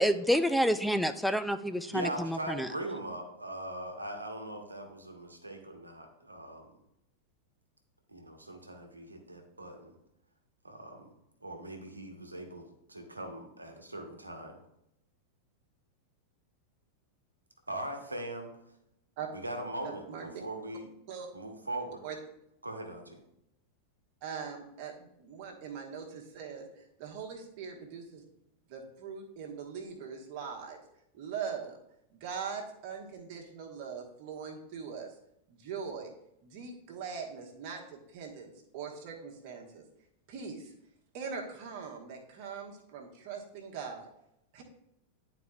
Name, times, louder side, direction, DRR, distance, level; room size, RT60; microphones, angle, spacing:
voice 1, 0.0-2.7, equal, ahead, 10 dB, 0.3 m, -28 dB
voice 2, 1.9-6.7 8.1-9.9 10.6-11.1 11.4-14.6 17.7-18.5 19.3-20.9 21.3-22.0 22.6-23.2, right 1 dB, 80° right, 3 dB, 1.0 m, -40 dB
voice 3, 20.1-20.4 21.1-21.3 22.0-22.2 24.2-28.2 28.7-30.8 31.1-31.8 32.1-35.1 35.5-36.1 36.4-39.8 40.3-40.7 41.1-44.1 44.5-44.6, right 6 dB, 45° right, 1 dB, 1.3 m, -41 dB
10.5 x 4.2 x 2.4 m, 0.81 s
figure-of-eight pair, 90°, 0 cm